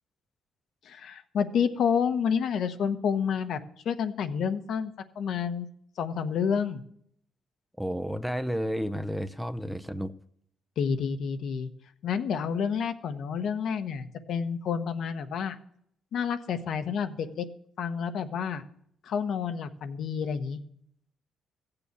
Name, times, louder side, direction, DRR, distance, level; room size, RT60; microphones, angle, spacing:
voice 1, 0.8-3.6 3.8-5.7 6.0-6.8 10.8-11.7 12.0-15.6 16.1-17.5 17.8-18.6 19.0-20.6, left 7 dB, 70° left, 1.1 m, -29 dB
voice 2, 7.8-10.2, equal, ahead, 0.6 m, -31 dB
15.0 x 6.9 x 8.4 m
cardioid pair, 90°, 0 cm